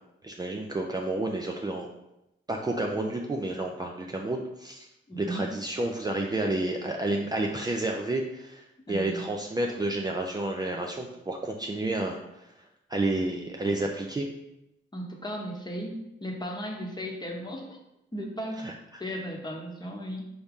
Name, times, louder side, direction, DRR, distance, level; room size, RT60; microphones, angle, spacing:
voice 1, 0.2-1.9 2.5-4.9 5.2-12.5 12.9-14.3 18.6-18.7, right 2 dB, 20° right, 1 dB, 0.4 m, -30 dB
voice 2, 5.1-5.5 8.9-9.2 14.9-17.8 18.1-18.6 19.0-20.2, equal, 20° left, 0 dB, 0.9 m, -36 dB
4.7 x 2.7 x 3.5 m, 0.88 s
cardioid pair, 75°, 20 cm